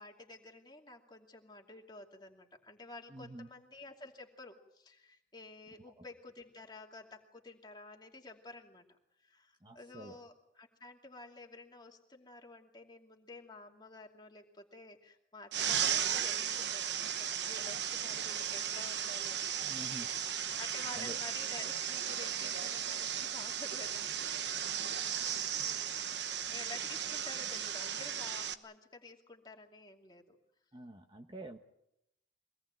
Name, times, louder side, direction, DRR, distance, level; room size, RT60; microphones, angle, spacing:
voice 1, 0.0-8.8 9.2-19.7 20.6-26.0 26.5-30.4, left 2 dB, 25° left, 2 dB, 2.6 m, -51 dB
voice 2, 3.1-3.5 6.0-6.1 9.6-10.1 19.7-20.1 20.9-21.2 30.7-31.6, right 1 dB, 25° right, 5 dB, 1.1 m, -47 dB
sound 1, 15.5-28.5, right 9 dB, 70° right, 1.1 m, -36 dB
24.0 x 18.5 x 9.0 m, 0.81 s
head